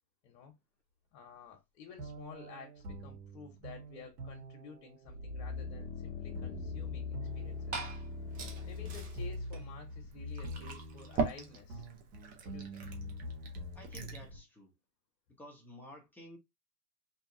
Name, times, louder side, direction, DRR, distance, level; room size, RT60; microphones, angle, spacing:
voice 1, 0.2-0.6 1.1-7.8 8.6-11.9 12.4-12.8, left 6 dB, 55° left, 1.1 m, -52 dB
sound 1, 2.0-14.4, equal, 75° right, 1.2 m, -46 dB
sound 2, 5.1-9.4 9.9-10.0, left 4 dB, 40° left, 0.7 m, -41 dB
Glass / Fill (with liquid), 7.2-14.3, right 4 dB, 20° right, 0.4 m, -42 dB
voice 2, 13.7-14.8 15.4-16.4, left 1 dB, 5° left, 0.9 m, -52 dB
2.8 x 2.6 x 2.7 m
hypercardioid pair, 125°, 48 cm